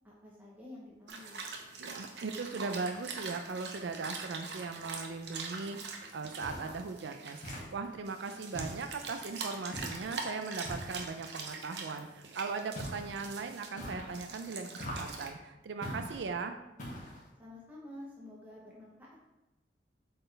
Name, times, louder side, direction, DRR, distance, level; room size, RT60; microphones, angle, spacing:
voice 1, 0.0-1.5 17.4-19.2, left 1 dB, 10° right, -5 dB, 0.9 m, -50 dB
sound 1, 1.1-7.6 8.1-13.7 14.1-15.3, right 4 dB, 70° right, 0.9 m, -43 dB
voice 2, 1.8-7.4 7.7-16.6, right 4 dB, 90° right, 7 dB, 0.4 m, -39 dB
sound 2, 6.4-6.9 7.4-8.0 8.5-9.2 9.7-10.1 10.6-11.2 12.7-13.2 13.8-14.3 14.8-15.3 15.8-16.3 16.8-17.3, equal, 45° left, 2.0 m, -43 dB
7.8 x 4.3 x 3.3 m, 1.0 s
head